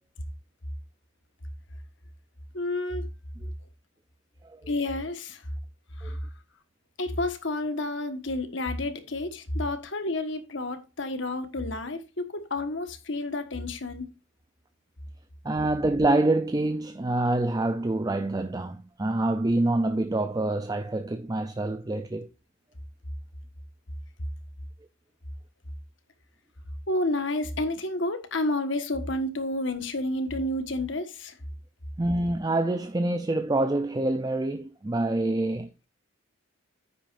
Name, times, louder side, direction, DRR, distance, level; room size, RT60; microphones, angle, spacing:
voice 1, 2.5-3.1 4.7-5.4 6.0-6.2 7.0-14.1 26.9-31.3, left 2 dB, 65° left, 1.5 m, -30 dB
voice 2, 15.4-22.3 32.0-35.9, right 2 dB, 20° right, 0.5 m, -26 dB
9.8 x 8.9 x 2.6 m
head